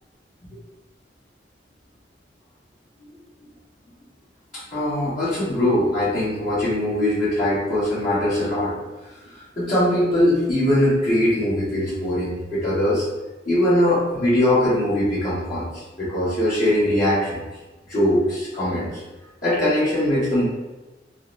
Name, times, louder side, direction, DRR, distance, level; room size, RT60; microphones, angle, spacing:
voice 1, 4.7-8.7 9.6-13.0 13.4-17.4 17.9-18.9 19.4-20.4, left 1 dB, 45° left, -15 dB, 1.3 m, -21 dB
3.8 x 2.1 x 2.6 m, 1.1 s
head